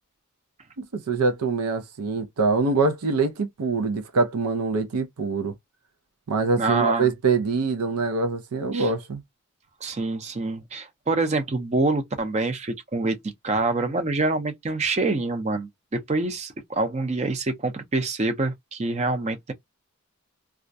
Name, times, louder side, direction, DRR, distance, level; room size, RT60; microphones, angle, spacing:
voice 1, 0.8-5.5 6.3-9.2, right 4 dB, 85° right, 0.5 m, -24 dB
voice 2, 6.6-7.1 8.7-8.9 9.8-13.2 13.4-19.5, right 3 dB, 30° right, 0.5 m, -26 dB
2.3 x 2.1 x 2.5 m
head